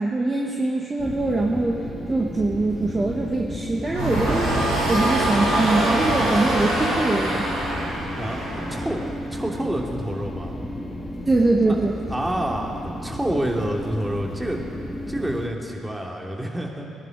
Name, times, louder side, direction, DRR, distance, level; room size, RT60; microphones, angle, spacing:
voice 1, 0.0-1.8 2.1-7.4 11.3-11.9, right 2 dB, 30° right, -1 dB, 1.5 m, -23 dB
sound 1, 1.0-15.5, left 1 dB, 15° left, 2.3 m, -33 dB
sound 2, 3.9-9.1, right 1 dB, 90° right, 3.9 m, -24 dB
voice 2, 8.2-9.0 9.3-10.5 11.7-14.6 15.1-16.8, right 1 dB, 10° right, 0 dB, 2.6 m, -28 dB
20.5 x 11.0 x 5.3 m, 2.8 s
hypercardioid pair, 45°, 0 cm